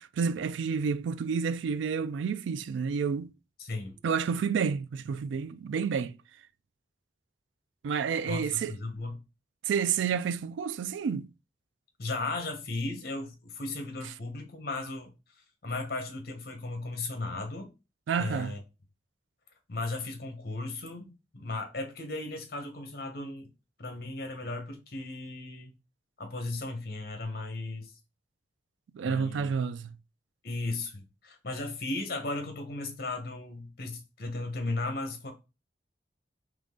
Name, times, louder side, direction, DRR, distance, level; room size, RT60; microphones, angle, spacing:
voice 1, 0.0-3.3 4.0-6.1 7.8-8.7 9.6-11.3 18.1-18.5 28.9-29.9, right 6 dB, 85° right, 0.3 m, -30 dB
voice 2, 3.6-4.0 8.2-9.2 12.0-17.7 18.2-18.6 19.7-23.5 23.8-25.7 26.2-27.9 29.0-29.5 30.4-35.3, left 2 dB, 55° left, 1.0 m, -36 dB
3.8 x 3.1 x 3.7 m
head